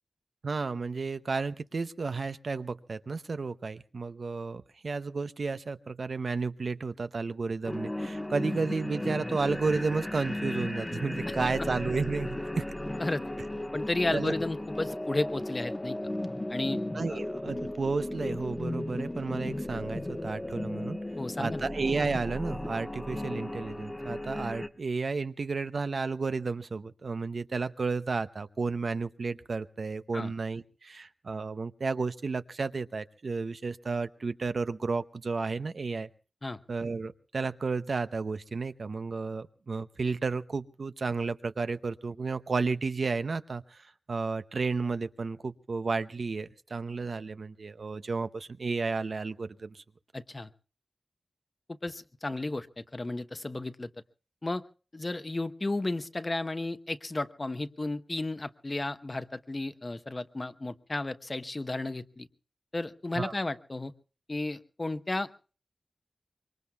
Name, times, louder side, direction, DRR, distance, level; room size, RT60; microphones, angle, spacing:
voice 1, 0.4-12.6 14.1-14.3 16.9-21.0 21.4-36.1 36.7-49.8 63.2-63.3, right 4 dB, 75° right, 11 dB, 0.7 m, -32 dB
sound 1, 7.6-24.7, left 1 dB, 25° left, 1.0 m, -35 dB
voice 2, 13.7-16.0 16.5-16.8 17.1-17.2 21.2-21.7 30.1-30.3 36.4-36.6 50.1-50.5 51.8-53.9 54.4-54.6 54.9-62.3 62.7-63.9 64.3-65.3, left 2 dB, 40° left, 10 dB, 0.9 m, -33 dB
25.0 x 23.0 x 2.3 m, 0.38 s
wide cardioid pair, 65°, 0 cm